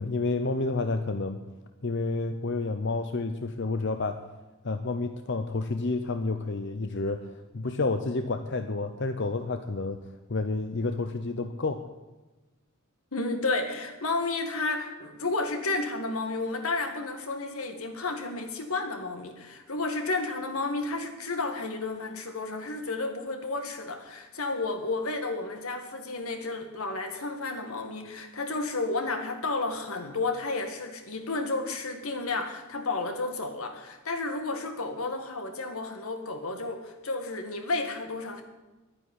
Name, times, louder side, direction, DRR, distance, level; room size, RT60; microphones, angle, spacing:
voice 1, 0.0-1.4 1.8-4.2 4.6-10.0 10.3-11.9, left 3 dB, 55° left, 8 dB, 0.8 m, -30 dB
voice 2, 13.1-38.4, left 3 dB, 90° left, 5 dB, 2.1 m, -32 dB
11.5 x 10.0 x 9.7 m, 1.1 s
head